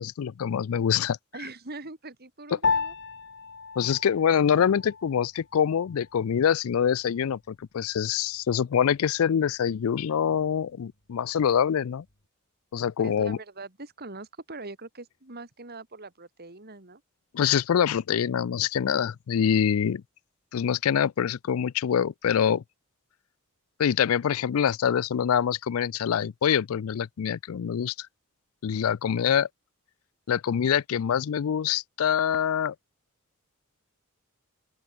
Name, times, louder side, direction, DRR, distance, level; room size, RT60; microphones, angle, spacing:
voice 1, 0.0-1.2 3.8-12.0 12.7-13.4 17.3-20.0 20.5-22.6 23.8-28.1 28.6-29.5 30.3-32.7, left 8 dB, 70° left, 0.4 m, -25 dB
voice 2, 1.3-2.9 13.0-17.0, right 3 dB, 45° right, 2.9 m, -42 dB
Piano, 2.6-12.3, left 5 dB, 55° left, 4.6 m, -36 dB
open air
head